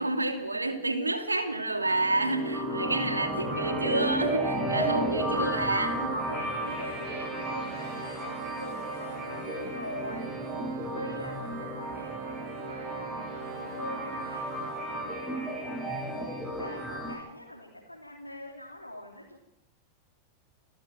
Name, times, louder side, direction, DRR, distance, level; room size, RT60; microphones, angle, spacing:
voice 1, 0.0-6.2, right 2 dB, 80° right, 6 dB, 2.7 m, -29 dB
sound 1, 1.8-17.2, right 1 dB, 10° right, 7.9 m, -33 dB
voice 2, 4.6-5.0 6.3-10.3 10.9-16.0 16.6-19.4, left 1 dB, 85° left, -2 dB, 3.1 m, -43 dB
Organ, 4.7-15.5, right 13 dB, 50° right, 1.5 m, -44 dB
29.5 x 13.0 x 7.7 m, 0.91 s
figure-of-eight pair, 90°, 0 cm